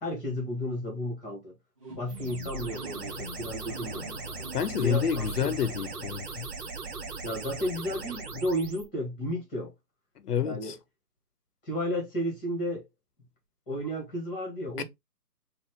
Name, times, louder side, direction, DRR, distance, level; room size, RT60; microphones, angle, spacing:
voice 1, 0.0-1.5 1.9-4.1 4.8-5.5 7.2-9.7 10.4-10.8 11.6-12.8 13.7-14.8, equal, 5° left, 1.2 m, -33 dB
sound 1, 1.8-8.4, right 2 dB, 20° right, 1.4 m, -44 dB
sound 2, 2.1-8.9, right 4 dB, 70° right, 1.3 m, -40 dB
voice 2, 4.5-6.5 10.2-10.8 14.8-14.9, left 8 dB, 75° left, 0.6 m, -29 dB
4.2 x 2.5 x 3.1 m
hypercardioid pair, 165°, 47 cm